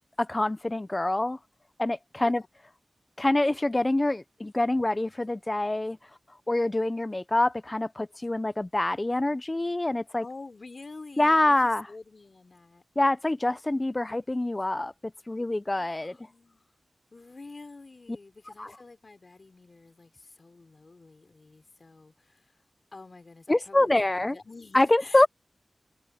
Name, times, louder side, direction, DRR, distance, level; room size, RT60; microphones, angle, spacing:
voice 1, 0.2-1.4 1.8-2.4 3.2-6.0 6.5-10.2 11.2-11.9 13.0-16.2 18.6-18.7 23.5-24.4 24.7-25.3, left 2 dB, 25° left, 0.7 m, -25 dB
voice 2, 10.2-12.8 15.7-16.7 17.1-22.6 22.9-24.0 24.3-25.3, left 3 dB, 50° left, 3.6 m, -47 dB
wide cardioid pair, 60°, 0 cm